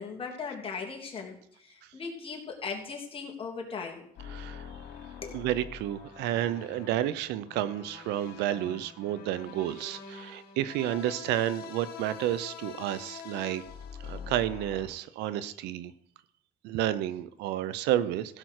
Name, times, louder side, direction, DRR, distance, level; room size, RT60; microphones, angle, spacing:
voice 1, 0.0-4.1 5.2-5.4, left 5 dB, 35° left, 0 dB, 3.1 m, -38 dB
sound 1, 4.2-14.9, left 6 dB, 70° left, 3.3 m, -45 dB
voice 2, 4.3-4.7 5.3-13.6 14.0-15.9 16.6-18.4, right 12 dB, 90° right, 16 dB, 0.8 m, -31 dB
15.5 x 5.9 x 6.6 m, 0.68 s
cardioid pair, 110°, 17 cm